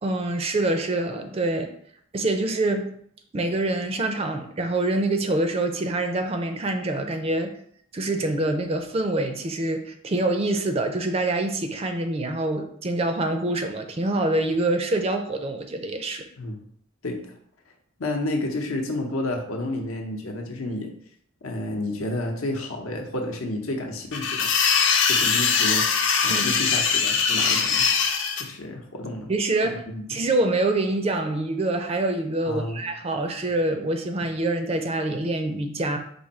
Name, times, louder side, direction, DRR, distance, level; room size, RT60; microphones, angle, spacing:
voice 1, 0.0-1.7 2.1-2.9 3.3-7.5 7.9-16.3 26.3-26.4 29.3-29.8 30.1-36.0, right 2 dB, 30° right, 6 dB, 0.4 m, -25 dB
voice 2, 17.0-17.3 18.0-20.9 21.4-24.5 25.1-25.9 26.2-27.9 28.4-29.3 29.6-30.2 32.5-32.8, left 1 dB, 80° left, 2 dB, 0.8 m, -30 dB
sound 1, 24.1-28.4, left 6 dB, 55° left, 0.6 m, -21 dB
4.8 x 2.6 x 4.2 m, 0.66 s
head